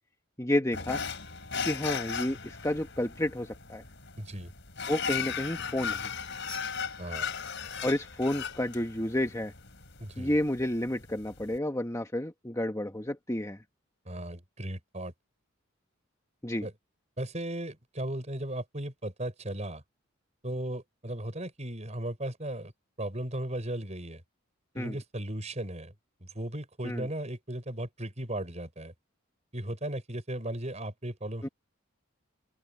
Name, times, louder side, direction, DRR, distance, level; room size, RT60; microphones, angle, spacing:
voice 1, 0.4-1.0 1.6-3.8 4.9-6.1 7.8-9.5 10.2-13.6 16.4-16.7 24.7-25.0 26.8-27.1 31.4-31.5, left 1 dB, 15° left, 1.5 m, -30 dB
sound 1, 0.7-11.6, left 6 dB, 60° left, 5.6 m, -37 dB
voice 2, 4.2-4.5 7.0-7.3 10.0-10.4 14.0-15.1 16.6-16.7 17.2-19.8 20.4-22.7 23.0-24.2 24.7-25.9 26.2-28.9 29.5-31.5, right 1 dB, 35° right, 6.1 m, -36 dB
open air
head